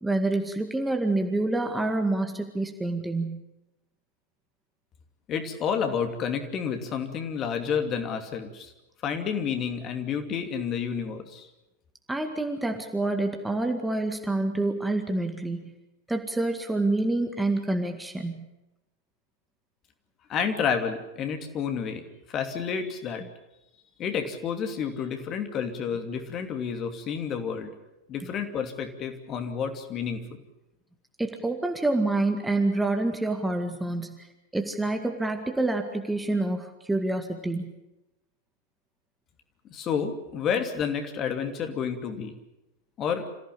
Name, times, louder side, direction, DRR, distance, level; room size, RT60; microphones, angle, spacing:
voice 1, 0.0-3.4 12.1-15.7 16.1-18.5 31.2-34.3 34.5-37.7, right 2 dB, 5° right, 5 dB, 2.0 m, -27 dB
voice 2, 5.3-8.7 9.0-11.5 20.3-23.3 24.0-27.7 28.1-30.2 39.7-42.3 43.0-43.3, left 7 dB, 30° left, 6 dB, 2.7 m, -30 dB
27.0 x 15.5 x 8.7 m, 0.93 s
figure-of-eight pair, 90°, 0 cm